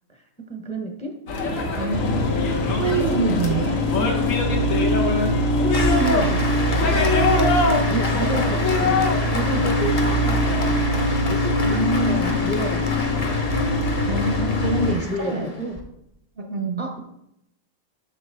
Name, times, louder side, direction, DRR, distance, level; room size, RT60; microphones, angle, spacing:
voice 1, 0.1-1.1 3.9-4.3 5.6-7.3 7.7-10.9 11.3-13.3 15.1-15.8 16.8-17.1, right 1 dB, 5° left, 3 dB, 0.6 m, -31 dB
sound 1, 1.3-10.7, left 3 dB, 80° left, 1.4 m, -25 dB
voice 2, 1.8-3.8 11.6-12.4 14.1-15.4 16.4-16.8, right 2 dB, 55° right, 5 dB, 0.8 m, -26 dB
sound 2, 1.9-14.9, left 1 dB, 60° left, 1.0 m, -23 dB
Applause, 5.7-15.8, left 2 dB, 30° left, 0.9 m, -31 dB
7.7 x 6.5 x 3.3 m, 0.80 s
omnidirectional pair, 1.4 m